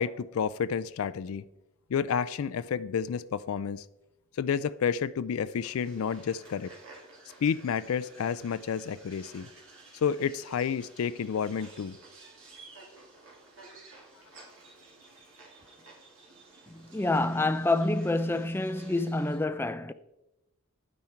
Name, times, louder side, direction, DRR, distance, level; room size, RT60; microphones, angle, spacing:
voice 1, 0.0-1.4 1.9-3.9 4.4-6.7 7.4-9.5 10.0-12.0, left 7 dB, 85° left, 0.4 m, -30 dB
sound 1, 5.6-19.4, right 3 dB, 75° right, 2.9 m, -53 dB
voice 2, 16.7-19.9, left 2 dB, 10° left, 0.4 m, -27 dB
10.5 x 9.4 x 4.5 m
head